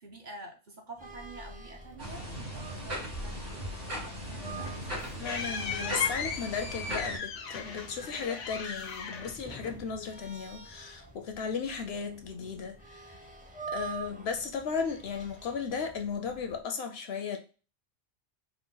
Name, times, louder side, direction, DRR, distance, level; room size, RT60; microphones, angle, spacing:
voice 1, 0.0-5.2, right 2 dB, 45° right, 0.8 m, -48 dB
sound 1, 1.0-16.6, right 4 dB, 10° right, 0.5 m, -47 dB
sound 2, 2.0-7.2, equal, 85° right, 2.0 m, -38 dB
sound 3, 4.3-10.1, left 6 dB, 85° left, 1.0 m, -37 dB
voice 2, 5.2-13.1 13.7-17.4, left 6 dB, 65° left, 0.8 m, -35 dB
4.6 x 2.1 x 3.7 m
omnidirectional pair, 1.2 m